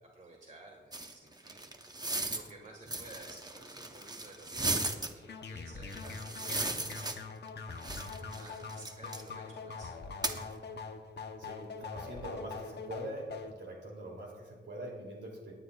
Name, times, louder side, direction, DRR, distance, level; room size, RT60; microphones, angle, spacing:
voice 1, 0.0-7.1 8.3-10.5, right 2 dB, 40° right, 0 dB, 1.8 m, -54 dB
sound 1, 0.9-2.5 2.9-5.1 5.9-7.5 7.8-9.3 10.2-10.4, right 2 dB, 20° right, 0.8 m, -36 dB
sound 2, 5.2-13.5, left 4 dB, 65° left, 0.9 m, -43 dB
voice 2, 11.4-15.5, right 1 dB, 75° right, -1 dB, 3.0 m, -43 dB
19.0 x 9.7 x 2.4 m, 1.3 s
wide cardioid pair, 115°, 19 cm